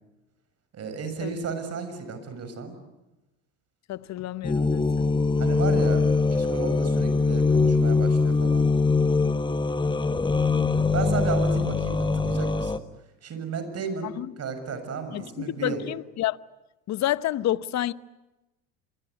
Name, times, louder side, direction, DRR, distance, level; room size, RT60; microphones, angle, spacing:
voice 1, 0.7-2.7 5.4-6.1 6.3-8.7 10.9-12.8 13.2-15.8, right 5 dB, 40° right, 6.9 m, -33 dB
voice 2, 3.9-5.1 14.0-14.3 15.1-16.4 16.9-17.9, left 13 dB, 45° left, 0.9 m, -29 dB
sound 1, 4.4-12.8, left 4 dB, 10° left, 1.1 m, -22 dB
27.0 x 22.0 x 9.7 m
hypercardioid pair, 80°, 37 cm